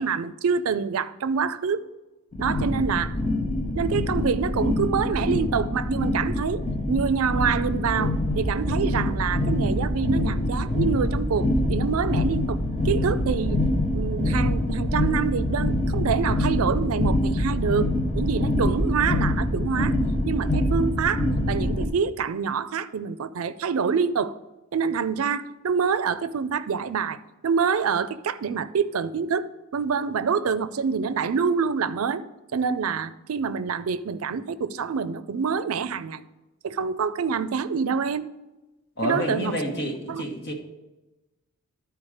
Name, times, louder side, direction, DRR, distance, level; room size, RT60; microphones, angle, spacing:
voice 1, 0.0-1.8 2.4-3.2 3.8-12.6 12.8-13.7 13.9-20.0 20.3-24.4 24.7-32.2 32.5-36.2 36.6-38.3 39.0-39.6 40.1-40.2, right 6 dB, 85° right, 14 dB, 0.4 m, -26 dB
sound 1, 2.3-21.8, left 1 dB, 30° left, 1.0 m, -25 dB
voice 2, 39.0-40.5, equal, 50° left, 3 dB, 1.3 m, -29 dB
11.5 x 4.6 x 4.9 m, 1.1 s
head